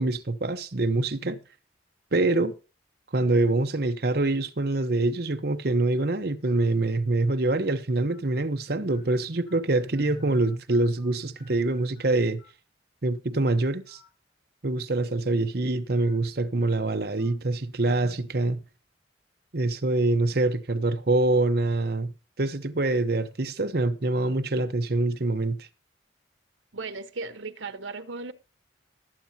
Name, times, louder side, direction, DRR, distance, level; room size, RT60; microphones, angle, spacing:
voice 1, 0.0-1.4 2.1-2.5 3.1-12.4 13.0-14.0 14.6-18.6 19.5-22.1 22.4-25.7, right 2 dB, 55° right, 0.9 m, -25 dB
sound 1, 5.9-6.1 6.9-7.0 8.1-8.2 8.9-9.0 9.5-9.6 9.9-11.1 11.4-12.1 12.4-12.5 13.8-14.1 14.5-14.6 15.9-16.1 16.6-16.7 17.2-17.3 18.0-18.1, left 6 dB, 90° left, 6.5 m, -57 dB
voice 2, 26.7-28.3, right 3 dB, 80° right, 1.1 m, -36 dB
19.5 x 8.3 x 2.8 m
head